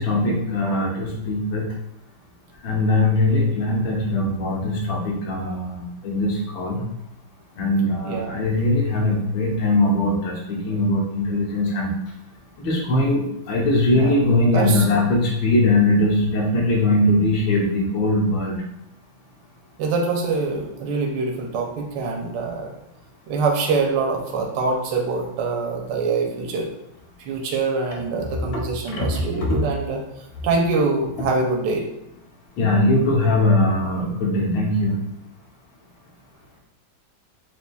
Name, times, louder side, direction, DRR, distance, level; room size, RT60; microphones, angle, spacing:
voice 1, 0.0-1.7 2.6-6.9 7.5-11.9 12.6-18.6 28.9-29.6 32.6-35.0, left 1 dB, 85° left, -2 dB, 1.7 m, -21 dB
voice 2, 8.0-8.4 13.9-14.1 14.5-15.1 19.8-22.7 23.3-26.7 27.2-31.9, right 3 dB, 70° right, 0 dB, 1.2 m, -24 dB
6.4 x 2.6 x 2.3 m, 0.82 s
omnidirectional pair, 2.2 m